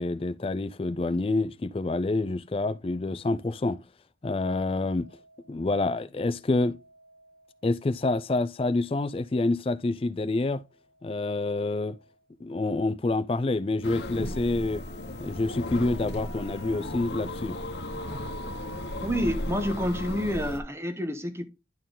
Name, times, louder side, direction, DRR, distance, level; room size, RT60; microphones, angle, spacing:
voice 1, 0.0-3.8 4.2-5.1 5.5-6.8 7.6-10.6 11.0-12.0 12.4-14.8 15.2-17.6, left 2 dB, 30° left, 0.4 m, -27 dB
sound 1, 4.5-5.8 6.3-8.0 8.4-9.5 10.5-12.3 12.9-13.0 13.8-14.1 14.4-19.2, right 4 dB, 50° right, 1.2 m, -52 dB
sound 2, 13.8-20.6, left 1 dB, 75° left, 1.0 m, -35 dB
voice 2, 19.0-21.5, equal, 15° right, 0.8 m, -29 dB
10.5 x 4.5 x 3.7 m
head